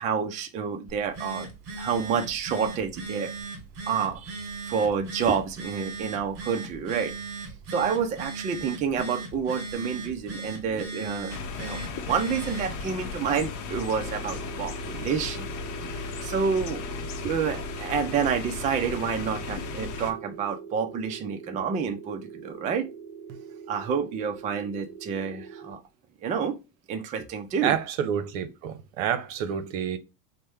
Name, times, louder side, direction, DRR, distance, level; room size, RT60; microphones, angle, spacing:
voice 1, 0.0-1.5 1.8-3.3 3.9-7.1 7.7-15.5 16.2-16.8 17.2-22.9 23.7-25.8 26.2-26.6 26.9-27.8, right 6 dB, 20° right, 0.4 m, -29 dB
Telephone, 0.9-12.8, right 3 dB, 50° right, 1.4 m, -38 dB
sound 1, 11.3-20.1, left 5 dB, 45° left, 0.7 m, -36 dB
sound 2, 13.9-25.7, right 7 dB, 15° left, 1.3 m, -43 dB
voice 2, 27.6-30.0, right 9 dB, 70° right, 0.7 m, -28 dB
3.3 x 2.1 x 4.2 m
supercardioid pair, 120°, 41 cm